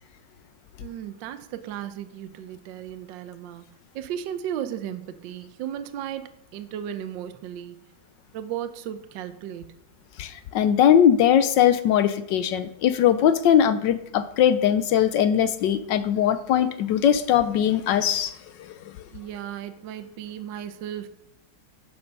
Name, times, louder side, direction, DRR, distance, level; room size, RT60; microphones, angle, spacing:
voice 1, 0.8-3.6 3.9-7.9 8.3-9.8 19.1-21.1, right 10 dB, 70° right, 10 dB, 1.3 m, -35 dB
voice 2, 10.2-18.9, left 9 dB, 70° left, 12 dB, 1.3 m, -20 dB
12.0 x 7.0 x 5.4 m, 0.80 s
omnidirectional pair, 2.2 m